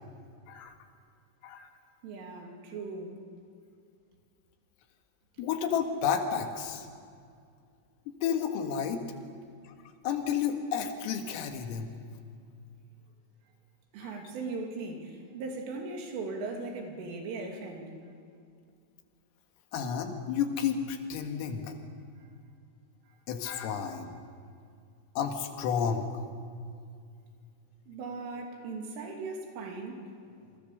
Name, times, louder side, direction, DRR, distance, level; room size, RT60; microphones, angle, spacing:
voice 1, 2.0-3.2 13.9-17.9 22.2-22.3 23.1-23.2 27.9-30.6, right 3 dB, 75° right, 2 dB, 5.2 m, -39 dB
voice 2, 5.4-6.9 8.1-9.0 9.7-9.8 10.0-11.9 14.0-14.1 19.7-21.7 23.3-24.1 25.2-26.1, left 7 dB, 85° left, 5 dB, 4.4 m, -31 dB
28.5 x 22.5 x 6.8 m, 2.3 s
omnidirectional pair, 5.8 m